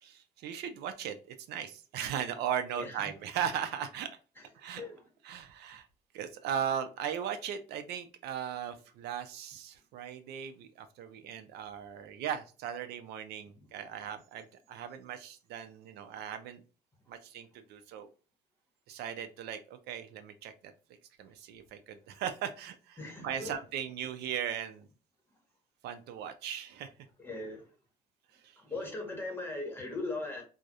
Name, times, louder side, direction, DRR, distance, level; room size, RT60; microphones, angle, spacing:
voice 1, 0.0-1.2 1.5-4.1 4.6-4.8 5.2-5.9 6.1-16.6 17.1-18.1 18.9-20.7 21.2-23.0 23.2-24.9 25.8-26.9 28.4-28.6, right 9 dB, 75° right, 0.4 m, -38 dB
voice 2, 23.0-23.5 27.2-27.6 28.6-30.4, left 2 dB, 15° left, 0.9 m, -38 dB
2.3 x 2.0 x 2.7 m
cardioid pair, 110°, 17 cm